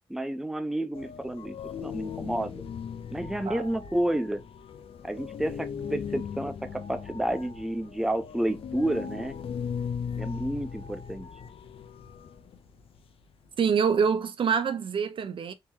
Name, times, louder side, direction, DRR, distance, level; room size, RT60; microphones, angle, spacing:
voice 1, 0.1-2.6 3.1-4.4 5.0-9.3 10.2-11.3, right 1 dB, 5° right, 0.5 m, -30 dB
sound 1, 0.9-13.8, left 7 dB, 75° left, 0.6 m, -38 dB
voice 2, 13.6-15.5, right 6 dB, 60° right, 0.5 m, -25 dB
3.6 x 3.0 x 2.8 m
cardioid pair, 75°, 10 cm